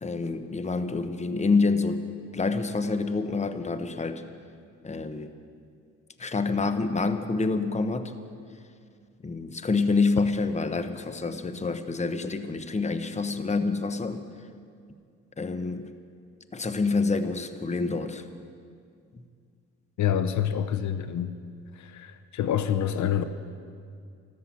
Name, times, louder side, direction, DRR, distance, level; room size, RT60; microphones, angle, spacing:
voice 1, 0.0-2.0 2.3-4.2 4.8-5.3 6.2-8.1 9.2-14.3 15.4-15.9 16.5-18.2 19.1-19.2, left 3 dB, 25° left, 10 dB, 1.0 m, -27 dB
voice 2, 20.0-21.3 21.7-23.2, left 9 dB, 70° left, 12 dB, 0.8 m, -27 dB
14.0 x 13.0 x 7.3 m, 2.3 s
cardioid pair, 90°, 30 cm